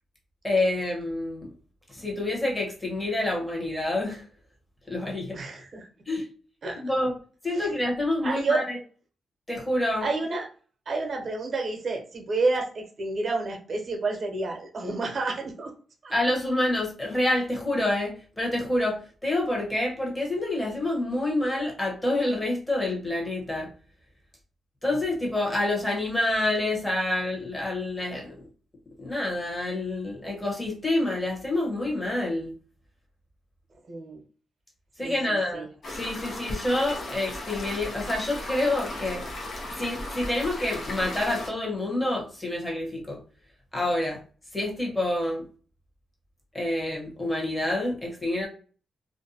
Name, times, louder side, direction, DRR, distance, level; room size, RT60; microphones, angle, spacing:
voice 1, 0.4-1.5 1.9-4.2 4.9-5.4 6.1-6.2 6.8-7.1 7.4-8.8 9.5-10.1 16.1-23.7 24.8-28.3 29.0-32.5 35.0-39.2 39.8-43.2 43.7-44.2 44.5-45.4 46.5-48.5, left 1 dB, 15° left, -2 dB, 1.0 m, -27 dB
voice 2, 5.3-5.9 6.6-6.8 7.5-7.7 8.2-8.6 10.0-10.5 10.9-15.7 16.0-16.1 33.9-34.2 35.0-35.7, right 3 dB, 50° right, 2 dB, 0.8 m, -29 dB
sound 1, 35.8-41.5, left 1 dB, 60° left, 0.8 m, -36 dB
2.5 x 2.2 x 2.7 m, 0.39 s
cardioid pair, 85°, 0 cm